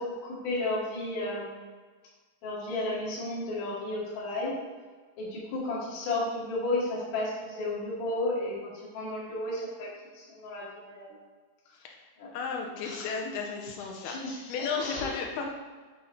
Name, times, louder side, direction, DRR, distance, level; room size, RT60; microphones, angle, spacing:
voice 1, 0.0-1.6 2.4-4.6 5.2-11.2 12.2-12.3 12.8-13.1 14.0-15.4, left 2 dB, 70° left, -6 dB, 4.0 m, -33 dB
voice 2, 12.3-15.4, left 5 dB, 85° left, 1 dB, 2.7 m, -34 dB
11.5 x 4.4 x 3.9 m, 1.4 s
omnidirectional pair, 4.4 m